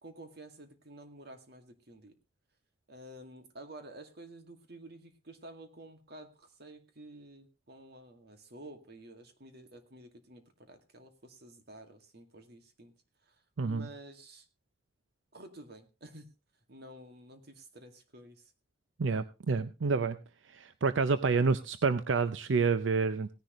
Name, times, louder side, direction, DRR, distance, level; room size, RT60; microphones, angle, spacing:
voice 1, 0.0-2.1 2.9-12.9 13.2-14.5 15.3-16.3 16.7-18.5, right 1 dB, 60° right, 6 dB, 2.1 m, -51 dB
voice 2, 19.0-20.2 20.5-23.3, right 4 dB, 85° right, 12 dB, 0.6 m, -28 dB
17.5 x 10.5 x 3.1 m, 0.28 s
head